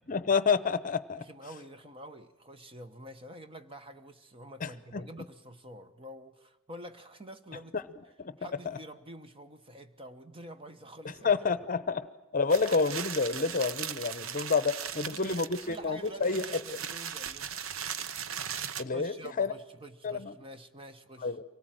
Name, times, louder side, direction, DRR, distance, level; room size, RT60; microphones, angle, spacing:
voice 1, 0.1-1.2 4.6-5.1 7.7-7.8 8.2-8.3 11.2-12.1 12.3-16.6 18.8-19.5 20.0-20.3 21.2-21.4, left 4 dB, 40° left, 0.8 m, -29 dB
voice 2, 1.2-7.7 8.4-11.4 14.8-17.6 18.9-21.4, right 1 dB, 25° right, 1.1 m, -47 dB
sound 1, 12.5-18.8, right 8 dB, 70° right, 0.8 m, -38 dB
25.0 x 18.5 x 9.1 m
head